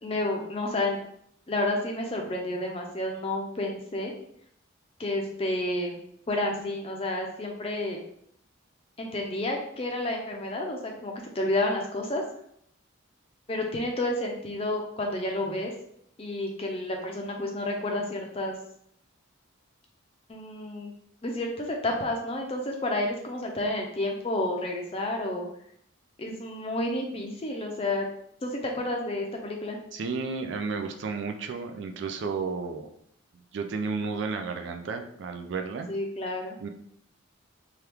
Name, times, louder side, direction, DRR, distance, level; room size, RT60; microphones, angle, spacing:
voice 1, 0.0-1.0 1.5-4.1 5.0-6.0 6.3-8.0 9.0-12.2 13.5-15.7 16.2-18.6 20.3-20.9 21.2-25.4 26.2-28.1 28.4-29.8 35.9-36.6, left 1 dB, 30° left, 1 dB, 0.5 m, -30 dB
voice 2, 29.9-32.9 33.5-35.9 36.6-36.7, right 4 dB, 60° right, 6 dB, 0.3 m, -32 dB
3.0 x 2.3 x 3.3 m, 0.69 s
head